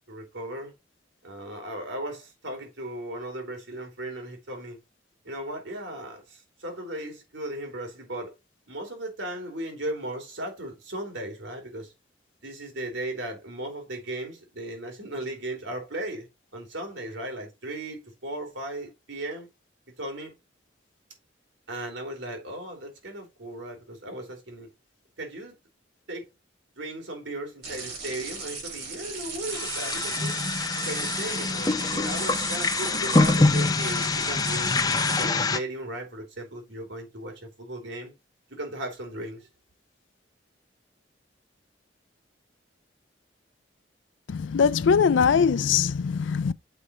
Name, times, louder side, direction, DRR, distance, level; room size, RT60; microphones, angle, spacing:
voice 1, 0.1-0.7 1.2-4.8 5.2-8.3 8.7-11.9 12.4-16.3 16.5-19.5 20.0-20.3 21.7-24.7 25.2-25.5 26.1-26.3 26.7-30.4 30.8-34.8 35.0-38.1 38.5-39.5, right 1 dB, 80° right, 3.3 m, -36 dB
sound 1, 27.6-35.2, right 4 dB, 55° right, 5.0 m, -36 dB
sound 2, 29.5-35.6, left 3 dB, 20° left, 0.5 m, -25 dB
voice 2, 44.3-46.5, left 6 dB, 80° left, 0.4 m, -21 dB
6.7 x 4.9 x 4.3 m
head